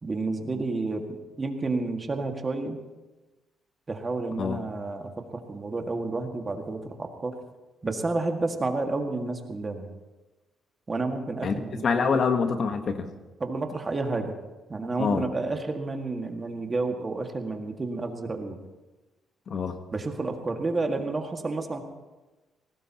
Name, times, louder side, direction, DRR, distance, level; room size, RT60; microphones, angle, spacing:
voice 1, 0.0-2.8 3.9-7.4 7.8-9.9 10.9-12.1 13.4-14.4 14.7-18.6 19.9-21.8, right 3 dB, 30° right, 4 dB, 1.9 m, -30 dB
voice 2, 11.8-13.1 15.0-15.3 19.5-19.8, left 5 dB, 55° left, 7 dB, 1.3 m, -25 dB
20.0 x 17.5 x 3.0 m, 1.1 s
cardioid pair, 90°, 0 cm